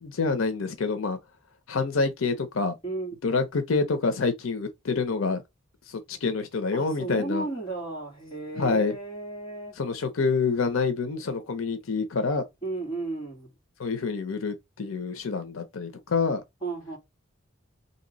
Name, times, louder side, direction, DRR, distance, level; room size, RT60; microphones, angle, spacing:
voice 1, 0.0-1.2 1.7-2.8 3.2-5.4 5.9-7.5 8.5-8.9 9.8-12.4 13.8-16.4, left 4 dB, 85° left, 0.7 m, -27 dB
voice 2, 2.8-3.4 6.7-9.8 12.6-13.5 16.6-17.0, right 3 dB, 25° left, 1.8 m, -34 dB
3.2 x 2.9 x 3.9 m
head